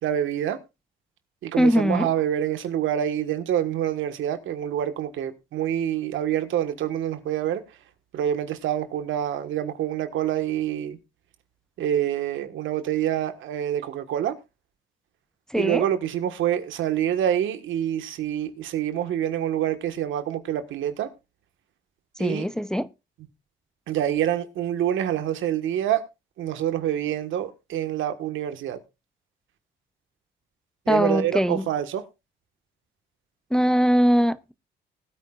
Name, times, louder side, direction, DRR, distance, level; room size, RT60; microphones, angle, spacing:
voice 1, 0.0-0.6 1.4-7.6 8.1-11.0 11.8-14.4 15.5-21.1 22.2-22.5 23.9-26.0 26.4-28.8 30.9-32.0, right 10 dB, 80° right, 1.5 m, -26 dB
voice 2, 1.6-2.1 15.5-15.8 22.2-22.9 30.9-31.7 33.5-34.5, equal, 5° left, 0.6 m, -21 dB
20.0 x 9.0 x 2.4 m
cardioid pair, 90°, 20 cm